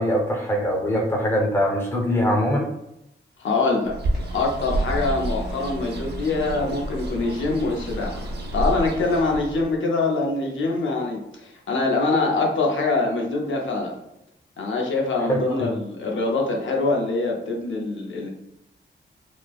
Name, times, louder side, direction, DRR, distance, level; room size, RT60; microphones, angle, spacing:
voice 1, 0.0-2.7 15.3-15.7, equal, 10° left, -1 dB, 0.6 m, -22 dB
voice 2, 3.4-3.9 4.3-13.9 14.6-18.3, left 3 dB, 85° left, 0 dB, 0.6 m, -24 dB
Bird, 3.9-9.8, right 1 dB, 55° right, 0.4 m, -29 dB
3.0 x 2.0 x 2.3 m, 0.85 s
wide cardioid pair, 125°, 20 cm